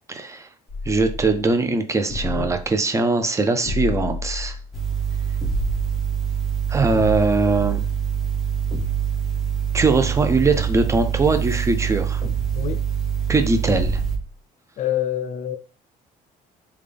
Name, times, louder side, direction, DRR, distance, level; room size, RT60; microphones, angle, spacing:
voice 1, 0.1-0.5 0.9-4.6 6.7-7.8 9.7-12.2 13.3-14.0, right 3 dB, 15° right, 0.5 m, -21 dB
sound 1, 0.7-1.5 2.1-2.7 3.6-4.7 5.4-6.0 6.9-8.0 8.7-9.3 10.5-11.6 12.2-12.8 13.7-14.3, left 2 dB, 25° left, 1.4 m, -31 dB
sound 2, 4.7-14.2, right 8 dB, ahead, 0.9 m, -25 dB
voice 2, 14.8-15.6, left 11 dB, 45° left, 0.4 m, -26 dB
3.5 x 2.3 x 3.3 m
cardioid pair, 110°, 17 cm